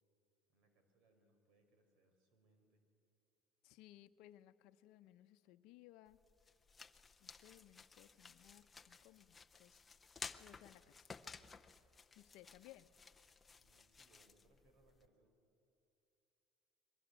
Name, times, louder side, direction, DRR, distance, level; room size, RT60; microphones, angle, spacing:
voice 1, 0.5-2.8 13.6-15.4, right 2 dB, 65° right, 7 dB, 4.7 m, -74 dB
voice 2, 3.6-6.2 7.2-9.8 10.3-11.1 12.2-12.9, left 14 dB, 70° left, 11 dB, 0.8 m, -62 dB
sound 1, 6.1-15.1, left 4 dB, 15° left, 0.7 m, -56 dB
28.5 x 22.5 x 8.3 m, 2.7 s
cardioid pair, 165°, 0 cm